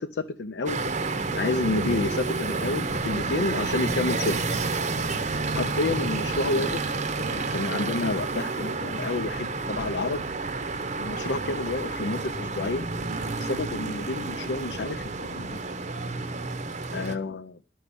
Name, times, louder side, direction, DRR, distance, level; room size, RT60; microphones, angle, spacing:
voice 1, 0.0-4.4 5.6-10.2 11.0-12.9 13.4-15.7 16.9-17.6, left 3 dB, 65° left, 0.5 m, -30 dB
sound 1, 0.7-17.2, right 3 dB, 40° right, 0.8 m, -30 dB
11.5 x 5.5 x 8.4 m
head